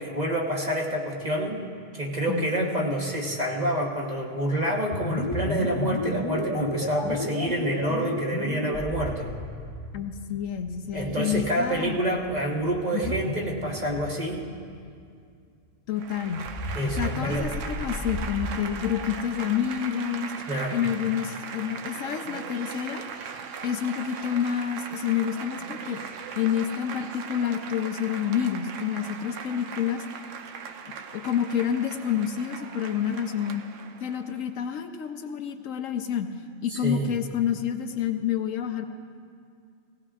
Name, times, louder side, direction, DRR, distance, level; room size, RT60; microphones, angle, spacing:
voice 1, 0.0-1.7 2.0-9.4 10.9-14.5 16.7-17.5 20.5-20.8 36.7-37.0, right 1 dB, 30° right, -2 dB, 1.3 m, -28 dB
voice 2, 2.3-2.7 9.9-12.2 12.9-13.2 15.9-16.5 17.0-20.3 20.7-23.1 23.6-26.0 26.4-30.0 31.1-33.6 34.0-36.3 36.6-38.9, left 9 dB, 75° left, 7 dB, 1.0 m, -28 dB
sound 1, 4.9-15.0 16.3-18.5, left 1 dB, 25° left, 1.0 m, -33 dB
Applause / Crowd, 15.9-34.5, right 6 dB, 70° right, 1.0 m, -39 dB
18.0 x 17.0 x 2.5 m, 2.3 s
omnidirectional pair, 1.5 m